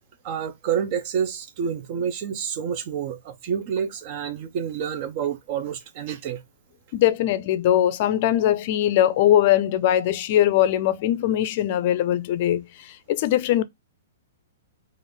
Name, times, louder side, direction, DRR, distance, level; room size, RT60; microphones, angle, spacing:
voice 1, 0.2-6.4, right 8 dB, 45° right, 0.6 m, -28 dB
voice 2, 6.9-13.6, left 12 dB, 45° left, 0.4 m, -21 dB
3.1 x 2.6 x 4.0 m
hypercardioid pair, 145°, 0 cm